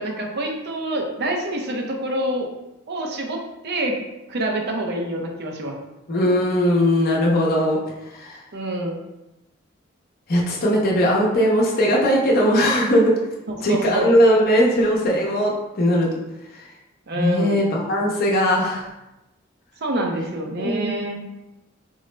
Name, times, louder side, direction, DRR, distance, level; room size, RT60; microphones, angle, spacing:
voice 1, 0.0-2.5 2.9-4.0 4.3-5.7 6.2-6.3 8.5-9.0 13.5-14.1 17.1-17.6 19.8-21.2, right 1 dB, 55° right, 1 dB, 0.5 m, -26 dB
voice 2, 6.1-7.8 8.1-8.4 10.3-13.1 13.6-16.1 17.1-18.9 20.6-20.9, equal, 50° left, -3 dB, 0.7 m, -19 dB
3.8 x 2.0 x 3.2 m, 0.95 s
head